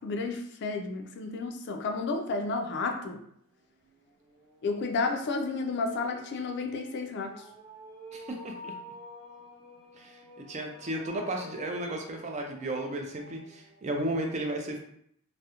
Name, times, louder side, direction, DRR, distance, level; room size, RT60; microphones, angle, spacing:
voice 1, 0.0-3.2 4.6-7.4, left 3 dB, 50° left, 4 dB, 0.3 m, -32 dB
sound 1, 3.4-14.1, left 1 dB, 75° right, 1.3 m, -50 dB
voice 2, 8.1-8.7 10.0-14.8, right 1 dB, 30° right, 2 dB, 0.4 m, -34 dB
2.4 x 2.1 x 2.8 m, 0.68 s
head